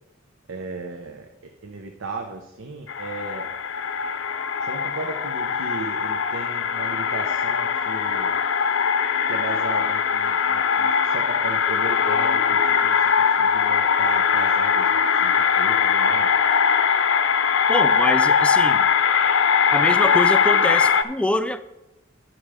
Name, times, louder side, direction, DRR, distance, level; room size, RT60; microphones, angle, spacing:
voice 1, 0.5-3.5 4.6-8.4 9.3-16.3, right 3 dB, 90° right, 4 dB, 0.8 m, -36 dB
sound 1, 2.9-21.0, left 6 dB, 70° left, 0.6 m, -21 dB
voice 2, 17.7-18.9 19.7-21.6, left 1 dB, 5° left, 10 dB, 0.4 m, -25 dB
11.0 x 6.2 x 4.9 m, 0.93 s
head